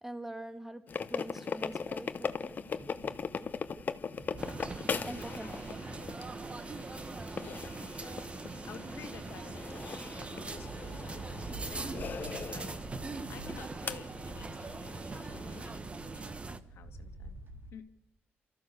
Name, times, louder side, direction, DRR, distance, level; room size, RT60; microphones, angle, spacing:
voice 1, 0.0-2.7 5.1-5.7, right 1 dB, 5° right, 1.5 m, -44 dB
sound 1, 0.9-15.7, left 5 dB, 45° left, 0.9 m, -40 dB
sound 2, 0.9-17.7, right 1 dB, 65° right, 3.6 m, -50 dB
sound 3, 4.4-16.6, right 3 dB, 30° right, 1.1 m, -42 dB
voice 2, 5.0-5.6 5.9-6.2 7.3-8.3 8.6-12.8 13.3-15.8 16.1-16.4 16.7-17.4 17.7-17.9, left 7 dB, 90° left, 1.7 m, -52 dB
28.0 x 14.0 x 6.7 m
cardioid pair, 115°, 4 cm